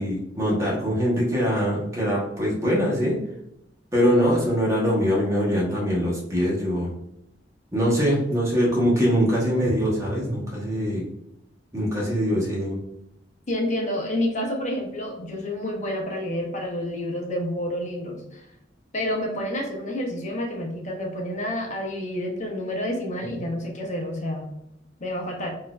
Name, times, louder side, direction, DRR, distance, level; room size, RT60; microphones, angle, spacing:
voice 1, 0.0-3.2 3.9-6.9 7.7-11.0 11.7-12.8 23.3-23.4, equal, 15° right, -4 dB, 1.1 m, -23 dB
voice 2, 13.5-18.4 18.9-24.5 25.0-25.5, left 1 dB, 40° left, 1 dB, 0.8 m, -29 dB
4.0 x 2.6 x 2.3 m, 0.79 s
head